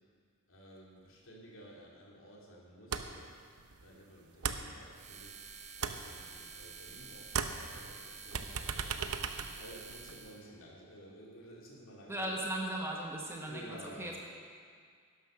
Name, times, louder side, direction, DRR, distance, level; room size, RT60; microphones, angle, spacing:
voice 1, 0.5-3.3 3.8-12.5 13.4-14.2, equal, 65° left, -3 dB, 2.8 m, -53 dB
sound 1, 2.9-3.3 3.6-5.4 5.6-7.0 7.2-10.3, right 6 dB, 85° right, 0.7 m, -38 dB
sound 2, 4.9-10.4, right 5 dB, 30° right, 0.9 m, -49 dB
voice 2, 12.1-14.2, right 1 dB, 10° right, -1 dB, 1.3 m, -37 dB
11.5 x 10.5 x 6.3 m, 2.1 s
head